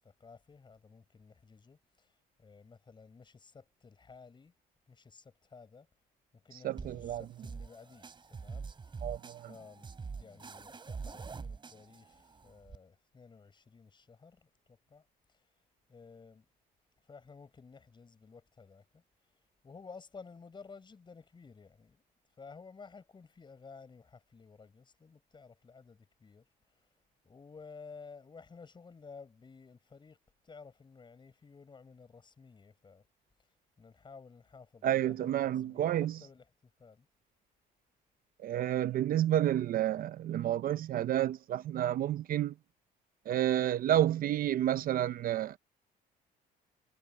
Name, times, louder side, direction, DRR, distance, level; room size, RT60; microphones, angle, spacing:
voice 1, 0.2-2.1 2.4-4.5 4.9-5.9 6.4-8.7 9.4-15.0 15.9-16.4 17.1-19.0 19.6-22.0 22.4-26.4 27.2-30.2 30.4-33.0 33.8-36.4 36.8-37.1, left 5 dB, 30° left, 6.8 m, -54 dB
voice 2, 6.6-7.3 9.0-9.5 34.8-36.2 38.4-42.5 43.3-45.6, right 12 dB, 60° right, 0.8 m, -30 dB
sound 1, 6.8-12.8, right 5 dB, 30° right, 3.7 m, -45 dB
cardioid pair, 110°, 17 cm